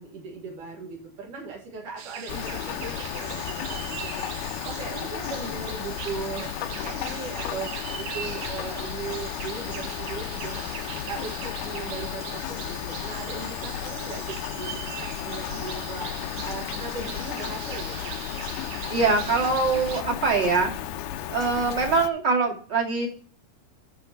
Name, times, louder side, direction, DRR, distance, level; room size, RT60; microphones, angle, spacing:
voice 1, 0.0-18.1, right 4 dB, 65° right, 0 dB, 3.2 m, -38 dB
sound 1, 2.0-20.0, right 8 dB, 85° right, 2.9 m, -40 dB
Rain, 2.3-22.1, left 11 dB, 75° left, 2.2 m, -34 dB
voice 2, 18.9-20.7 21.3-23.1, right 4 dB, 35° right, 0 dB, 2.8 m, -23 dB
12.5 x 4.9 x 5.7 m, 0.41 s
omnidirectional pair, 4.0 m